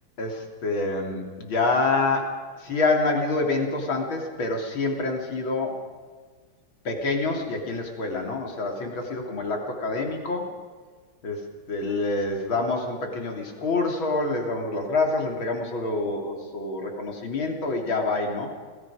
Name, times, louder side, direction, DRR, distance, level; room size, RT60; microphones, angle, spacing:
voice 1, 0.2-5.8 6.8-10.5 11.2-18.5, left 3 dB, 85° left, 2 dB, 4.0 m, -27 dB
28.5 x 20.5 x 5.0 m, 1.5 s
omnidirectional pair, 2.1 m